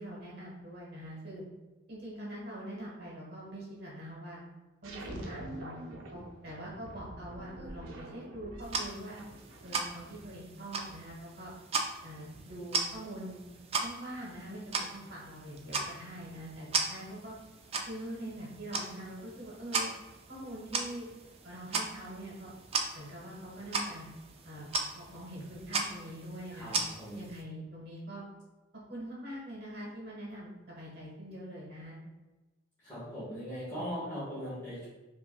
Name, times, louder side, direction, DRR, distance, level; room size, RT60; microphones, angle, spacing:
voice 1, 0.0-1.4 1.9-4.4 4.8-5.7 6.1-9.2 9.6-11.5 12.0-13.4 13.8-17.3 17.9-19.9 20.3-21.1 21.4-22.5 22.9-24.1 24.4-24.7 24.9-26.8 27.1-28.2 28.9-32.0, right 1 dB, 55° right, -4 dB, 1.3 m, -43 dB
sound 1, 4.8-10.3, right 1 dB, 80° right, 0.7 m, -46 dB
sound 2, 8.6-27.4, right 4 dB, 30° right, 0.4 m, -38 dB
voice 2, 26.5-27.2 32.8-34.9, equal, 15° left, -13 dB, 1.3 m, -39 dB
5.4 x 2.6 x 2.3 m, 1.1 s
head